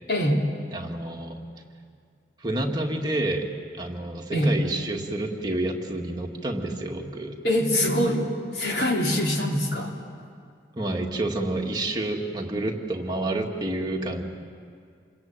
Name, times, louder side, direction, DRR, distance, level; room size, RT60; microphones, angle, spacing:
voice 1, 0.1-0.4 4.3-4.6 7.4-10.0, equal, 65° left, 0 dB, 3.4 m, -24 dB
voice 2, 0.7-1.4 2.4-3.4 3.8-7.4 10.8-14.2, right 1 dB, 25° right, 0 dB, 2.0 m, -29 dB
27.5 x 22.0 x 9.1 m, 2.3 s
head